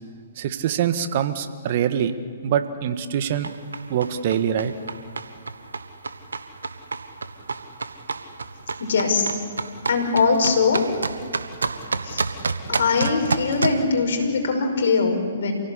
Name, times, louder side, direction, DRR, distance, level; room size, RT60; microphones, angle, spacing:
voice 1, 0.4-2.1 2.4-3.5 3.9-4.7, right 9 dB, 50° right, 10 dB, 1.6 m, -24 dB
sound 1, 3.4-13.8, right 4 dB, 80° right, 1.4 m, -30 dB
voice 2, 8.8-9.3 9.9-10.8 12.0-12.2 12.7-15.5, left 4 dB, 65° left, 3 dB, 5.4 m, -21 dB
28.0 x 17.0 x 8.6 m, 2.2 s
figure-of-eight pair, 125°, 0 cm